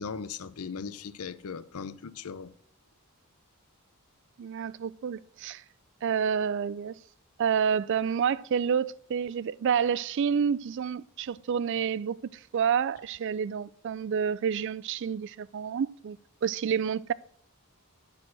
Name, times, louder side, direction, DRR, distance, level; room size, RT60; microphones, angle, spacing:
voice 1, 0.0-2.5, left 5 dB, 85° left, 0.6 m, -38 dB
voice 2, 4.4-5.6 6.0-7.0 7.4-12.2 12.5-17.1, right 7 dB, 55° right, 0.3 m, -29 dB
9.7 x 6.4 x 6.1 m
head